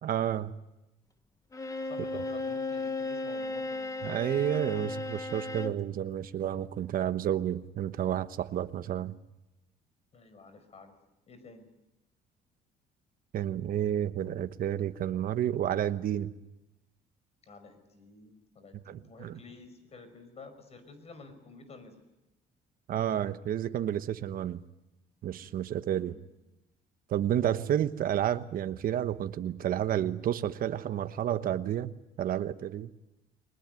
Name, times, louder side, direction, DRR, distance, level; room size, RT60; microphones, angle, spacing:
voice 1, 0.0-0.5 4.0-9.2 13.3-16.3 18.9-19.4 22.9-24.6 25.2-26.1 27.1-31.9 32.2-32.9, right 10 dB, 60° right, 11 dB, 1.1 m, -30 dB
Bowed string instrument, 1.5-5.8, left 2 dB, 20° left, 1.4 m, -35 dB
voice 2, 1.8-3.9 10.1-10.9 11.3-11.6 17.4-22.0 25.9-26.2 28.0-28.2, left 3 dB, 40° left, 10 dB, 5.3 m, -50 dB
22.5 x 20.0 x 9.3 m, 0.95 s
cardioid pair, 110°, 17 cm